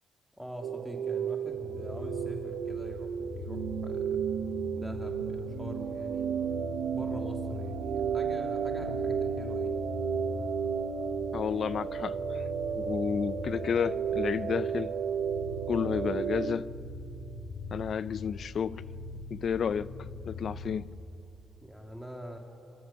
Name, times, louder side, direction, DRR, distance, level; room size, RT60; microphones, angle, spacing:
voice 1, 0.4-4.1 4.8-6.3 6.9-9.8 21.6-22.4, equal, ahead, 2.6 m, -44 dB
sound 1, 0.6-16.6, right 7 dB, 80° right, 0.8 m, -33 dB
sound 2, 1.5-20.8, left 3 dB, 85° left, 1.8 m, -42 dB
voice 2, 11.3-12.4 12.7-14.9 15.7-16.7 17.7-18.8 19.3-19.9 20.3-20.9, left 7 dB, 60° left, 0.5 m, -31 dB
29.5 x 13.0 x 7.0 m
cardioid pair, 70°, 0 cm